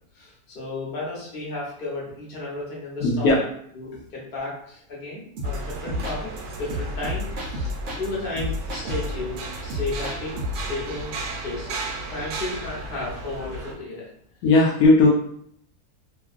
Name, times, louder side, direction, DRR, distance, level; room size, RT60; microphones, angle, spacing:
voice 1, 0.1-3.3 3.7-6.3 6.6-11.1 11.4-11.8 12.1-14.1, left 2 dB, 40° left, -5 dB, 1.0 m, -33 dB
voice 2, 3.0-3.4 14.4-15.1, left 2 dB, 75° left, -4 dB, 1.0 m, -16 dB
sound 1, 5.4-8.1 8.4-10.7, left 1 dB, 60° right, 0.8 m, -31 dB
sound 2, 5.4-13.7, right 2 dB, 85° right, 1.2 m, -35 dB
2.9 x 2.4 x 2.4 m, 0.67 s
omnidirectional pair, 1.7 m